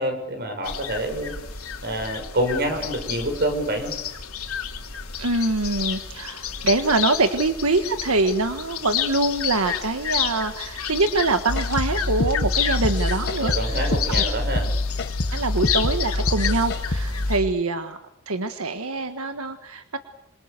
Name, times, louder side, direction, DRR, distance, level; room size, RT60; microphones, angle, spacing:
voice 1, 0.0-1.3 1.8-3.9 13.4-14.7, right 1 dB, 50° right, 6 dB, 6.3 m, -27 dB
sound 1, 0.6-17.4, left 9 dB, 90° left, 3.0 m, -31 dB
voice 2, 5.2-14.2 15.3-18.0 18.3-20.0, right 2 dB, 90° right, 8 dB, 1.5 m, -24 dB
sound 2, 11.5-17.4, left 1 dB, 55° left, 1.7 m, -25 dB
26.5 x 26.5 x 6.8 m, 0.81 s
head